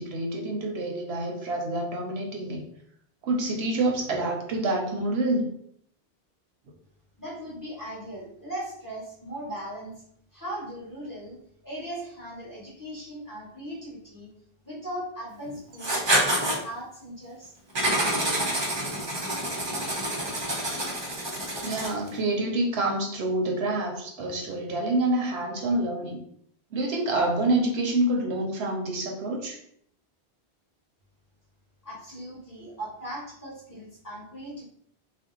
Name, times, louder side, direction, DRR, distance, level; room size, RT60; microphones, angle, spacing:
voice 1, 0.0-2.6 3.2-5.5 21.6-26.2 26.7-29.6, right 2 dB, 75° right, 1 dB, 0.9 m, -27 dB
voice 2, 7.2-10.0 10.3-14.3 14.6-16.0 16.3-17.5 31.8-34.6, right 1 dB, 20° left, -7 dB, 1.1 m, -38 dB
Writing, 15.8-16.6 17.7-22.1, right 1 dB, 35° right, 0.5 m, -27 dB
2.6 x 2.0 x 3.6 m, 0.67 s
omnidirectional pair, 1.1 m